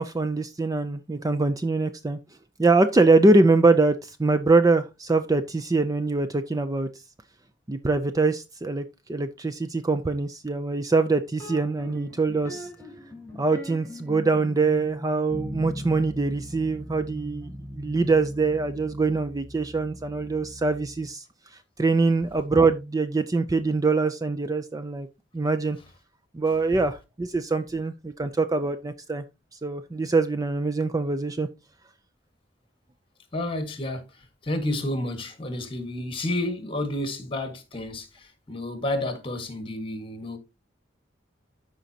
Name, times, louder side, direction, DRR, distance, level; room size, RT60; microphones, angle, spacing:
voice 1, 0.0-2.2 2.6-6.9 7.7-12.7 13.4-21.2 21.8-25.1 25.3-25.8 26.3-29.2 29.6-31.5, right 3 dB, 20° right, 0.4 m, -23 dB
sound 1, 11.4-21.1, equal, 10° left, 3.3 m, -40 dB
voice 2, 33.3-40.4, left 1 dB, 30° left, 1.6 m, -31 dB
13.0 x 5.1 x 2.8 m
head